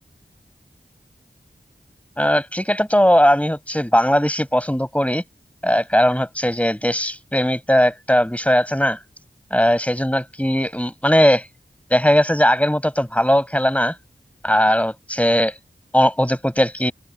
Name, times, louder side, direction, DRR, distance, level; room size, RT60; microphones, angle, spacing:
voice 1, 2.2-5.2 5.6-9.0 9.5-11.5 11.9-13.9 14.4-15.5 15.9-16.9, equal, 5° left, 6.5 m, -18 dB
open air
wide cardioid pair, 50°, 18 cm